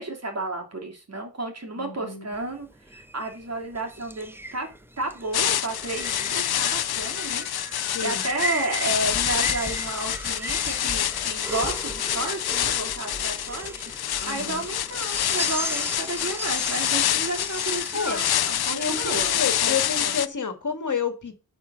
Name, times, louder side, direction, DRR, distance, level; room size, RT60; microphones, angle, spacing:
voice 1, 0.0-4.7 5.0-7.5 7.7-20.2, right 2 dB, 45° right, 2.9 m, -32 dB
voice 2, 1.8-2.3 7.8-8.2 14.2-14.6 17.9-18.2 18.7-21.3, left 6 dB, 55° left, 1.8 m, -30 dB
sound 1, 2.3-19.3, right 1 dB, 5° right, 0.8 m, -37 dB
sound 2, 5.3-20.3, left 11 dB, 85° left, 0.5 m, -27 dB
11.5 x 4.5 x 5.6 m
wide cardioid pair, 105°, 37 cm